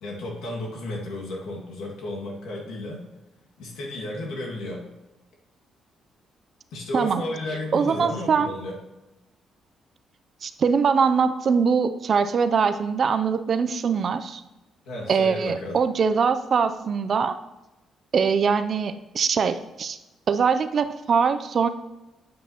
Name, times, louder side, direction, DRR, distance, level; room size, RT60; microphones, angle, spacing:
voice 1, 0.0-3.0 3.6-4.9 6.7-8.8 14.9-15.8, left 1 dB, 90° left, -2 dB, 2.1 m, -33 dB
voice 2, 7.7-8.5 10.4-14.4 15.1-17.4 18.1-20.0 20.3-21.7, right 6 dB, 50° right, 10 dB, 0.5 m, -22 dB
9.3 x 8.0 x 3.0 m, 1.0 s
cardioid pair, 100°, 0 cm